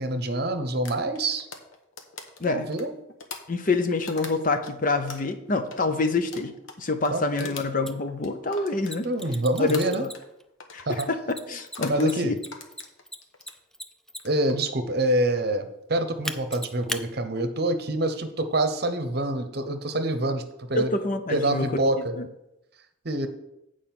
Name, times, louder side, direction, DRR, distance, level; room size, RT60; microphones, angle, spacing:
voice 1, 0.0-1.5 2.5-2.9 7.1-7.5 9.0-10.0 10.9-11.1 11.9-12.4 14.2-20.9 21.3-22.1 23.0-23.3, right 1 dB, 50° right, 8 dB, 0.8 m, -26 dB
sound 1, 0.9-4.7 5.1-9.4 9.7-10.3 10.6-10.9 11.6-12.1 12.5-13.6 14.1-14.5, left 4 dB, 85° left, 1.1 m, -42 dB
voice 2, 3.5-9.1 9.6-10.1 10.7-11.2 11.5-12.3 20.7-21.8 22.2-22.3, left 3 dB, 40° left, 8 dB, 0.7 m, -26 dB
Mechanisms, 7.9-8.0 8.8-10.4 10.9-14.5 16.2-17.0, equal, ahead, 0.4 m, -36 dB
8.9 x 4.9 x 5.9 m, 0.86 s
head